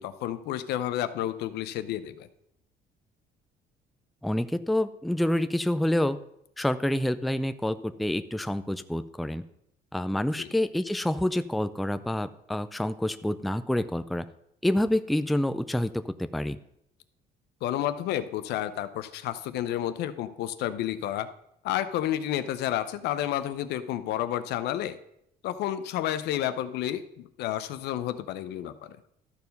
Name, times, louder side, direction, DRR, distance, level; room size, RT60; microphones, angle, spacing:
voice 1, 0.0-2.3 10.4-10.5 17.6-21.3 21.6-25.0 25.4-29.0, left 12 dB, 80° left, 13 dB, 0.6 m, -31 dB
voice 2, 4.2-6.2 6.6-9.4 9.9-14.3 14.6-16.6, left 1 dB, ahead, 12 dB, 0.4 m, -27 dB
13.0 x 4.6 x 5.3 m, 0.76 s
cardioid pair, 110°, 17 cm